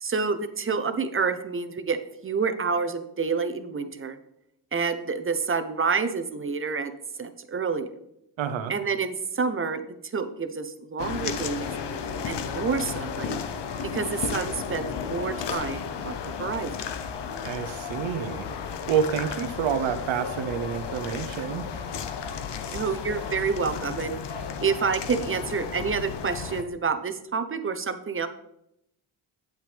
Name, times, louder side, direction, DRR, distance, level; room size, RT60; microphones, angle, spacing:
voice 1, 0.0-4.2 4.7-7.9 8.7-11.7 12.2-13.4 13.9-16.8 22.7-24.1 24.6-28.3, right 5 dB, 25° right, 9 dB, 0.8 m, -28 dB
voice 2, 8.4-8.7 17.4-18.5 18.9-21.6, right 8 dB, 75° right, 10 dB, 0.9 m, -28 dB
sound 1, 11.0-26.6, left 6 dB, 60° left, 0.9 m, -33 dB
9.1 x 7.7 x 3.4 m, 0.81 s
cardioid pair, 85°, 47 cm